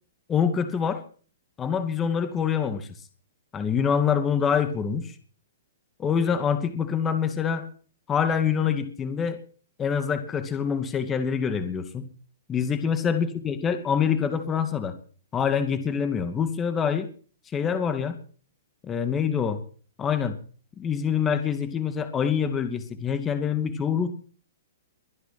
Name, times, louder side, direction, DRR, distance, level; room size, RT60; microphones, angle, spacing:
voice 1, 0.3-1.0 1.6-2.9 3.5-5.1 6.0-7.7 8.1-9.4 9.8-12.1 12.5-15.0 15.3-17.1 17.5-18.2 18.8-19.6 20.0-20.4 20.8-24.1, left 7 dB, 20° left, 9 dB, 2.3 m, -25 dB
23.0 x 10.5 x 6.0 m, 0.43 s
hypercardioid pair, 135°, 0 cm